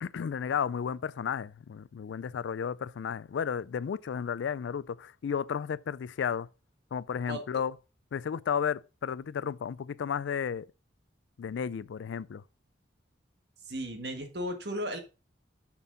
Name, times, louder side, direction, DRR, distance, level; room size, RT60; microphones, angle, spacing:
voice 1, 0.0-6.5 6.9-7.7 8.1-10.7 11.4-12.4, left 7 dB, 80° left, 0.3 m, -33 dB
voice 2, 13.7-15.0, equal, 60° right, 1.6 m, -35 dB
7.2 x 6.0 x 3.9 m
head